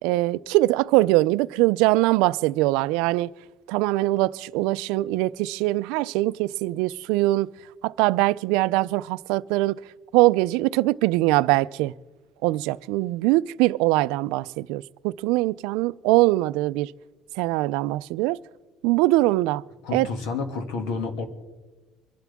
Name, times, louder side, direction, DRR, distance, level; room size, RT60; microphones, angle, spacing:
voice 1, 0.0-3.3 3.7-7.5 7.8-9.8 10.1-11.9 12.4-16.9 17.4-18.4 18.8-19.6 19.9-20.1, right 19 dB, 90° right, 0.4 m, -22 dB
voice 2, 19.8-21.2, left 4 dB, 75° left, 2.2 m, -29 dB
25.0 x 12.0 x 3.6 m
cardioid pair, 165°, 0 cm